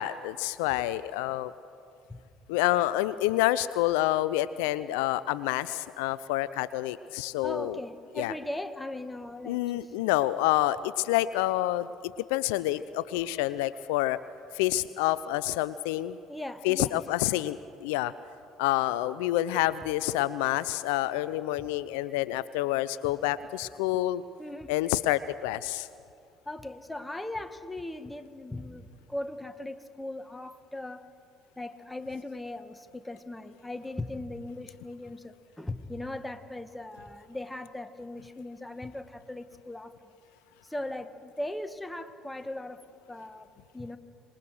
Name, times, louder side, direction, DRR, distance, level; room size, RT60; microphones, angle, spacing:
voice 1, 0.0-1.5 2.5-7.8 8.2-8.3 9.5-14.2 14.5-16.2 16.6-18.1 18.6-24.2 24.7-25.9, left 15 dB, 75° left, 17 dB, 0.4 m, -28 dB
voice 2, 7.4-9.9 16.3-17.0 24.4-24.7 26.4-31.1 31.6-39.9 40.6-43.5 43.7-44.0, left 1 dB, 10° left, 9 dB, 1.6 m, -39 dB
26.0 x 21.0 x 6.4 m, 2.4 s
hypercardioid pair, 55°, 0 cm